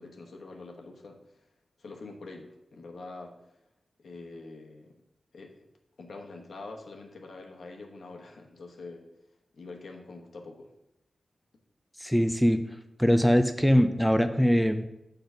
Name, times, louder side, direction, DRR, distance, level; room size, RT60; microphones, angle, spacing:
voice 1, 0.0-1.5 1.8-3.6 4.0-4.9 5.3-5.7 6.0-9.0 9.5-10.7, left 3 dB, 80° left, 2 dB, 1.1 m, -45 dB
voice 2, 12.0-12.6 13.0-14.8, equal, ahead, 8 dB, 0.4 m, -22 dB
6.9 x 3.9 x 5.5 m, 0.86 s
wide cardioid pair, 100°, 0 cm